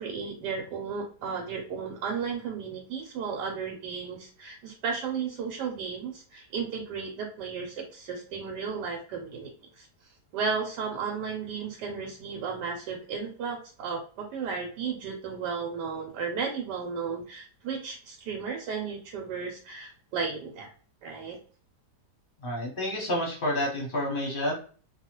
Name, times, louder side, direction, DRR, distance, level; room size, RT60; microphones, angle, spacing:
voice 1, 0.0-20.7 21.0-21.4, right 5 dB, 80° right, 1 dB, 1.2 m, -34 dB
voice 2, 22.4-24.5, left 1 dB, 45° left, -2 dB, 0.8 m, -29 dB
2.6 x 2.3 x 2.9 m, 0.42 s
omnidirectional pair, 1.8 m